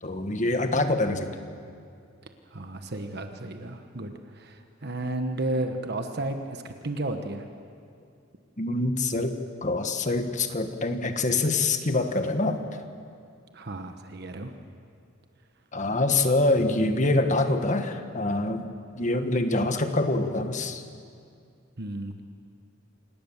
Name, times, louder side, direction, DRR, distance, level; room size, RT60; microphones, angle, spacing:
voice 1, 0.0-1.4 8.6-12.6 15.7-18.6 19.0-20.8, left 2 dB, 40° left, 7 dB, 1.5 m, -25 dB
voice 2, 2.5-4.6 4.8-7.5 13.5-14.5 21.8-22.2, right 2 dB, 55° right, 6 dB, 1.3 m, -33 dB
27.5 x 19.0 x 7.3 m, 2.4 s
head